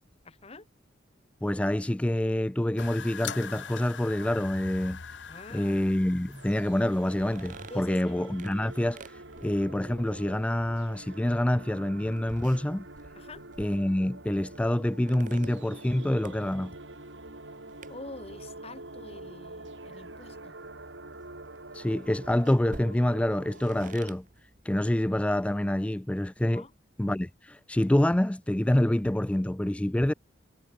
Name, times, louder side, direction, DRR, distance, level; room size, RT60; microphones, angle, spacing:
voice 1, 0.2-0.7 5.3-5.8 7.7-8.2 13.1-13.4 17.9-20.6 26.5-26.7, left 2 dB, 35° left, 1.5 m, -46 dB
voice 2, 1.4-5.2 5.5-12.9 13.6-16.7 21.7-26.6 27.0-30.1, left 1 dB, 5° left, 0.3 m, -27 dB
sound 1, 2.8-7.9, left 7 dB, 75° left, 0.9 m, -42 dB
sound 2, 6.3-24.1, right 2 dB, 80° right, 5.0 m, -46 dB
sound 3, 7.1-25.6, right 2 dB, 45° right, 1.8 m, -53 dB
head